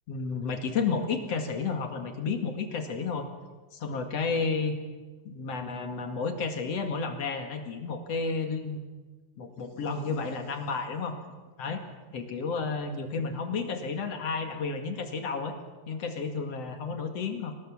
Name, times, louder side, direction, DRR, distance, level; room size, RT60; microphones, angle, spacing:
voice 1, 0.1-3.3 3.7-4.8 5.2-8.8 9.4-11.2 11.6-11.8 12.1-15.6 15.9-17.5, left 4 dB, 60° left, 6 dB, 3.0 m, -31 dB
25.0 x 19.0 x 7.3 m, 1.3 s
omnidirectional pair, 3.4 m